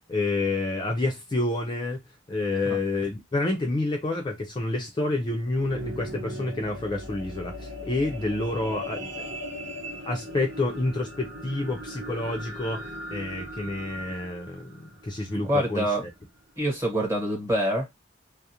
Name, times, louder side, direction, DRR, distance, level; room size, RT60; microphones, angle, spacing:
voice 1, 0.1-2.0 2.3-9.3 10.0-15.8, left 2 dB, 25° left, 0.4 m, -29 dB
sound 1, 5.2-15.8 16.4-16.5, equal, 65° right, 0.9 m, -39 dB
voice 2, 15.3-16.0 16.6-17.9, right 1 dB, 15° right, 1.1 m, -26 dB
2.4 x 2.0 x 2.7 m
head